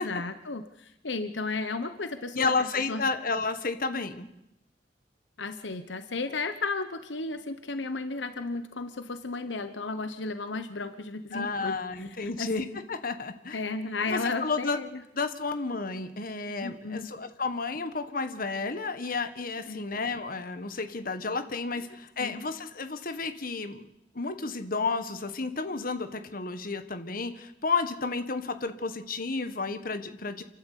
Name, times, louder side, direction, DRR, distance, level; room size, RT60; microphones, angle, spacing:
voice 1, 0.0-3.0 5.4-11.7 12.2-12.5 13.5-15.0 16.6-17.1 19.7-20.0 22.2-22.4, left 3 dB, 80° left, 9 dB, 1.2 m, -34 dB
voice 2, 2.3-4.3 11.3-13.6 14.1-14.8 15.1-23.9 24.1-30.4, left 4 dB, 50° left, 9 dB, 1.6 m, -31 dB
28.0 x 12.0 x 8.4 m, 0.86 s
head